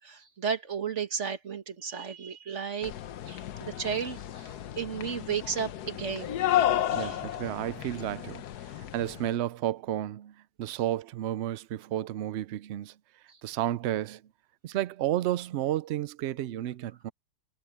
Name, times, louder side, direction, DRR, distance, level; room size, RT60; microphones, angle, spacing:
voice 1, 0.0-2.9 3.3-6.4 6.9-7.2 13.3-13.4, right 7 dB, 45° right, 1.9 m, -34 dB
sound 1, 2.8-9.3, left 12 dB, 75° left, 1.3 m, -32 dB
voice 2, 6.9-8.4 8.7-13.0 13.4-14.2 14.6-17.1, right 13 dB, 75° right, 0.6 m, -32 dB
omnidirectional pair, 1.7 m